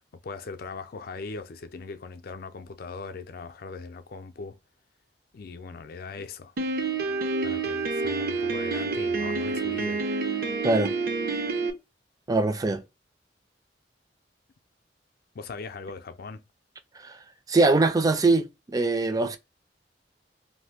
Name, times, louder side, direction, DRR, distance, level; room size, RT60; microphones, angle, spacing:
voice 1, 0.2-4.6 5.3-6.5 7.4-10.0 15.3-16.4, left 4 dB, 55° left, 0.4 m, -39 dB
Piano, 6.6-11.7, right 3 dB, 60° right, 0.6 m, -28 dB
voice 2, 12.3-12.8 17.0-17.2 17.5-19.4, right 3 dB, 20° right, 0.4 m, -22 dB
2.7 x 2.5 x 3.4 m
head